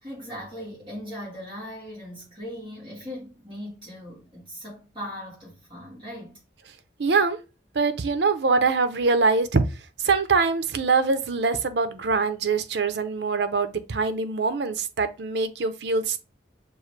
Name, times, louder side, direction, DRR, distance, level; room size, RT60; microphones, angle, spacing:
voice 1, 0.0-6.4, equal, 30° right, 1.7 m, -39 dB
voice 2, 7.0-7.4 7.7-9.6 10.0-16.2, right 4 dB, 75° right, 0.6 m, -23 dB
6.3 x 2.4 x 3.2 m
head